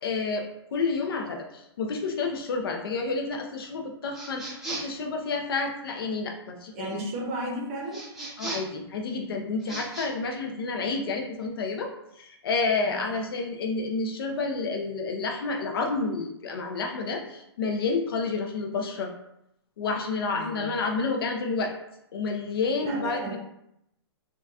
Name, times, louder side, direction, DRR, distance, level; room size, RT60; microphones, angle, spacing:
voice 1, 0.0-6.9 8.4-11.9 12.2-19.1 19.8-21.7 22.1-23.4, left 4 dB, 55° left, 2 dB, 0.6 m, -30 dB
sound 1, 4.1-5.0 7.9-8.8 9.6-10.1, right 2 dB, 5° right, 0.5 m, -36 dB
voice 2, 6.7-8.0 12.8-13.1 20.3-20.7 22.8-23.4, right 1 dB, 30° right, -1 dB, 0.7 m, -34 dB
3.9 x 2.2 x 2.3 m, 0.80 s
hypercardioid pair, 160°, 14 cm